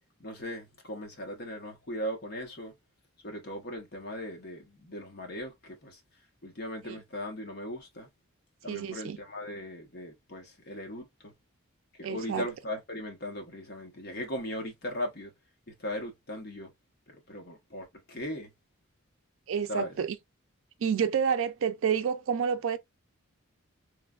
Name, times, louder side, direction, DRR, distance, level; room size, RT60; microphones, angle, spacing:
voice 1, 0.2-2.7 3.2-6.0 6.4-8.1 8.6-11.3 12.0-15.3 15.8-16.7 17.1-18.5 19.7-20.0, left 1 dB, 50° left, 0.9 m, -38 dB
voice 2, 8.7-9.2 12.0-12.5 19.5-20.2 20.8-22.8, right 7 dB, 70° right, 0.4 m, -29 dB
3.1 x 2.2 x 2.3 m
head